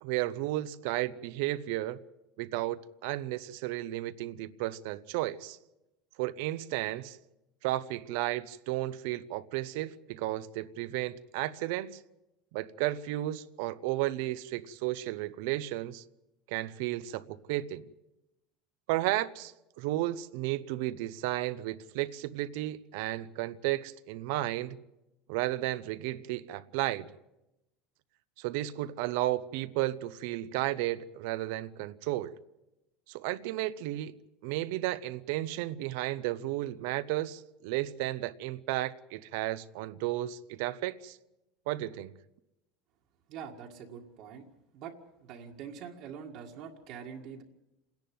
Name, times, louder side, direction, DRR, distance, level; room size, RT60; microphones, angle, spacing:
voice 1, 0.0-2.0 2.4-5.6 6.2-7.2 7.6-12.0 12.5-16.0 16.5-17.8 18.9-24.8 25.3-27.1 28.4-32.4 33.1-34.1 34.4-41.2 41.7-42.1, right 16 dB, 65° right, 0.7 m, -33 dB
voice 2, 43.3-44.5 44.7-47.4, right 7 dB, 50° right, 1.8 m, -44 dB
28.0 x 10.5 x 9.4 m
cardioid pair, 170°, 0 cm